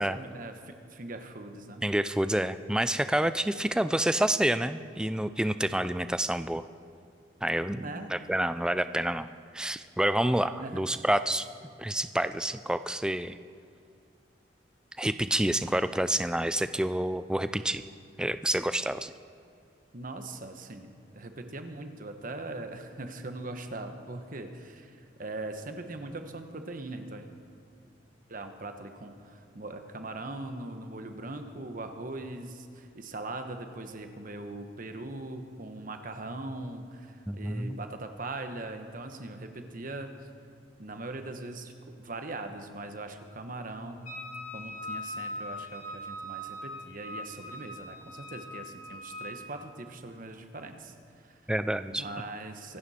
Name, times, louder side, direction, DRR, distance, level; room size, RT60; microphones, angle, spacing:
voice 1, 0.0-1.8 7.7-8.1 10.6-10.8 19.9-27.3 28.3-40.2 40.8-41.7 42.0-44.2 44.5-50.9 51.2-51.4 51.9-52.8, right 2 dB, 45° right, 7 dB, 1.1 m, -40 dB
voice 2, 1.8-6.6 7.4-11.5 11.8-13.4 15.0-17.8 18.2-19.1 37.3-37.8 51.5-52.0, right 1 dB, 5° right, 12 dB, 0.3 m, -28 dB
Wind instrument woodwind instrument, 44.0-49.4, left 1 dB, 40° left, 3.5 m, -41 dB
24.5 x 11.0 x 4.3 m, 2.4 s
head